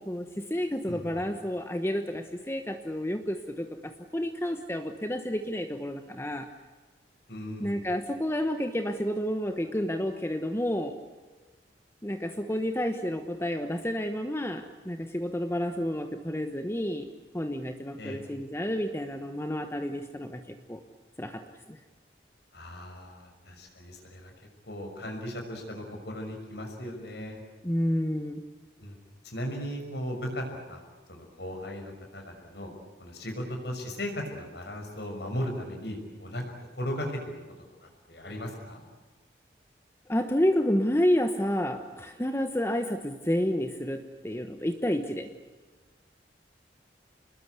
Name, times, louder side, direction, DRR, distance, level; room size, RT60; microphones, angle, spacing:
voice 1, 0.0-6.5 7.6-10.9 12.0-17.0 17.3-20.8 21.2-21.4 21.7-21.8 27.6-28.4 40.1-45.3, equal, 15° left, 6 dB, 1.2 m, -30 dB
voice 2, 0.9-1.2 7.3-7.9 18.0-18.2 22.5-24.3 24.6-27.4 28.8-29.0 29.2-30.8 31.1-32.7 33.0-37.4 37.8-38.8, equal, 70° left, 2 dB, 6.1 m, -37 dB
28.0 x 21.0 x 8.2 m, 1.3 s
head